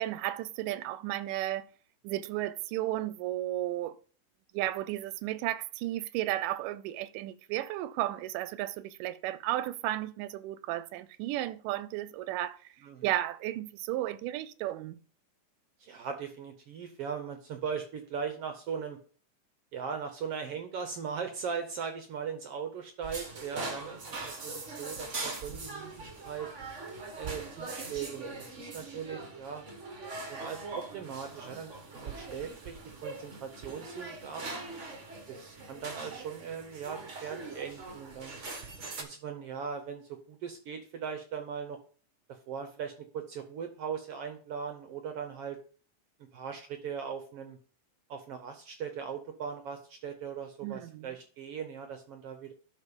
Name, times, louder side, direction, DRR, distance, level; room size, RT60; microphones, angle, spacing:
voice 1, 0.0-1.7 2.0-4.0 4.5-12.6 13.0-15.0 50.6-51.1, right 14 dB, 90° right, 2.2 m, -34 dB
voice 2, 15.8-19.0 19.7-26.5 27.2-29.6 30.3-31.8 32.0-34.4 35.3-38.4 39.0-41.8 42.5-45.6 46.3-47.6 48.1-52.5, right 7 dB, 75° right, 1.4 m, -39 dB
sound 1, 23.0-39.0, right 3 dB, 55° right, 0.8 m, -42 dB
11.5 x 4.4 x 5.2 m
omnidirectional pair, 3.7 m